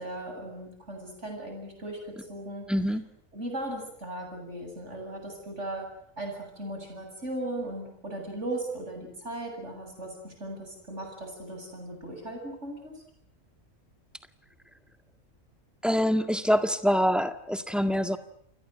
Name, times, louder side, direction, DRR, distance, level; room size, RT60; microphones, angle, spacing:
voice 1, 0.0-2.0 2.3-2.7 3.3-5.9 6.2-12.9, right 1 dB, 60° right, 3 dB, 8.4 m, -37 dB
voice 2, 2.7-3.1 15.8-18.2, equal, ahead, 9 dB, 1.7 m, -25 dB
29.0 x 22.0 x 7.9 m, 0.63 s
omnidirectional pair, 1.4 m